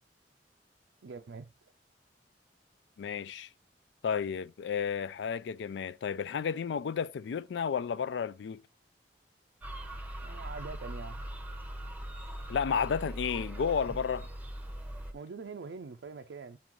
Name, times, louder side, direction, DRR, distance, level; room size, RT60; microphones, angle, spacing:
voice 1, 1.0-1.7 10.2-11.2 15.1-16.6, right 4 dB, 90° right, 0.4 m, -44 dB
voice 2, 3.0-3.5 4.0-8.6 12.5-14.3, left 6 dB, 80° left, 0.3 m, -32 dB
sound 1, 9.6-15.1, right 1 dB, 10° right, 0.7 m, -41 dB
8.7 x 3.8 x 3.0 m
head